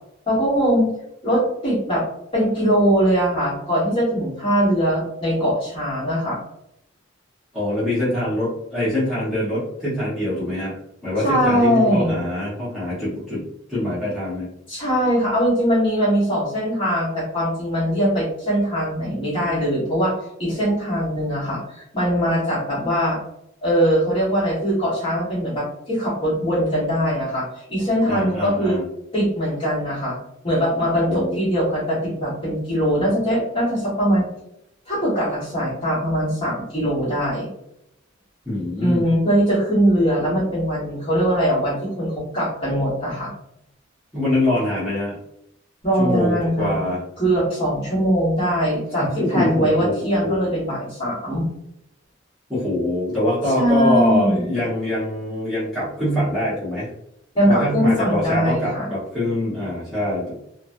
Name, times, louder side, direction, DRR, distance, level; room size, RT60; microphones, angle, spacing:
voice 1, 0.3-0.9 1.2-2.0 2.3-6.4 11.2-12.2 14.7-23.2 23.6-28.8 29.1-30.2 30.4-34.3 34.9-37.5 38.8-43.3 45.8-46.8 47.2-51.5 53.6-54.5 57.3-58.9, equal, 25° left, -7 dB, 1.5 m, -21 dB
voice 2, 7.5-10.8 11.0-13.4 13.7-14.5 28.1-28.8 31.1-31.4 38.4-39.0 44.1-45.2 46.0-47.0 49.0-50.3 52.5-56.9 57.5-60.3, left 1 dB, ahead, -12 dB, 1.1 m, -24 dB
3.1 x 2.2 x 2.6 m, 0.78 s
head